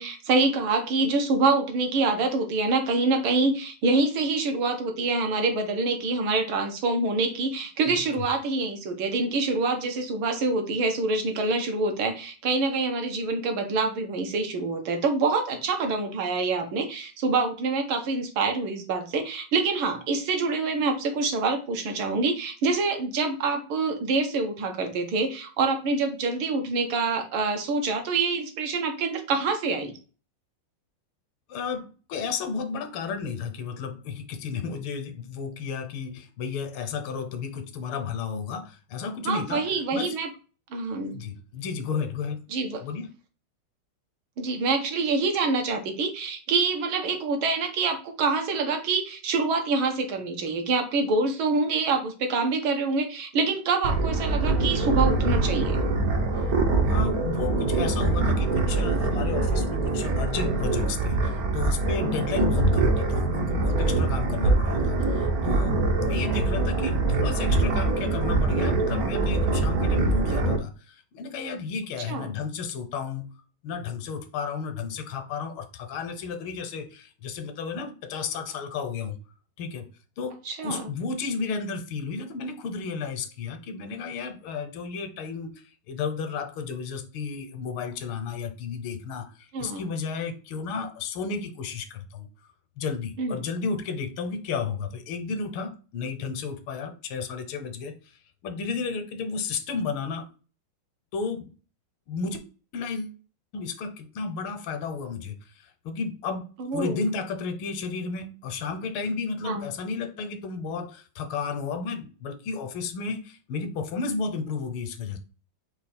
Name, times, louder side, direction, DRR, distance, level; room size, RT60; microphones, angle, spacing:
voice 1, 0.0-30.0 39.3-40.3 40.7-41.2 42.5-42.8 44.4-55.8 72.1-72.3 80.5-80.9 89.5-89.9 93.2-93.4 106.6-107.1 109.4-109.7, right 3 dB, 75° right, 1.8 m, -26 dB
voice 2, 7.9-8.2 31.5-40.1 41.0-42.4 42.8-43.1 56.3-56.5 56.9-73.3 73.6-79.2 79.6-79.9 80.2-85.5 85.9-92.3 92.8-100.3 101.1-101.5 102.1-102.4 102.7-103.2 103.5-106.5 106.7-115.2, left 5 dB, 85° left, 1.6 m, -33 dB
sound 1, 53.8-70.6, right 2 dB, 60° right, 1.1 m, -24 dB
5.2 x 2.4 x 4.2 m
omnidirectional pair, 2.3 m